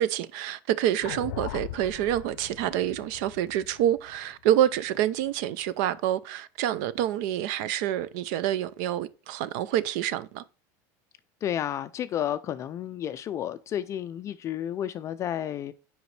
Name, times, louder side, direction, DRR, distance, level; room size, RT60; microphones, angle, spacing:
voice 1, 0.0-10.4, right 12 dB, 65° right, 0.5 m, -27 dB
sound 1, 1.0-5.3, left 13 dB, 85° left, 0.6 m, -40 dB
voice 2, 11.4-15.7, left 10 dB, 30° left, 0.3 m, -31 dB
7.9 x 5.1 x 3.2 m
supercardioid pair, 150°, 10 cm